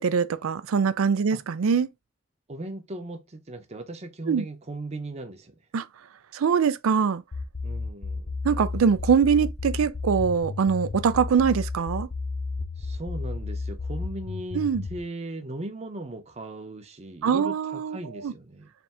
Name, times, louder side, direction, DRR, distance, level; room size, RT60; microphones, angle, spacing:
voice 1, 0.0-1.9 4.3-4.4 5.7-5.9 6.3-7.2 8.4-12.1 14.5-14.8 17.2-18.3, right 6 dB, 85° right, 0.4 m, -23 dB
voice 2, 2.5-5.6 7.6-8.4 12.8-14.6 14.9-18.7, right 1 dB, 30° right, 0.7 m, -38 dB
sound 1, 7.3-15.0, left 3 dB, 35° left, 0.5 m, -32 dB
3.4 x 2.6 x 4.2 m
head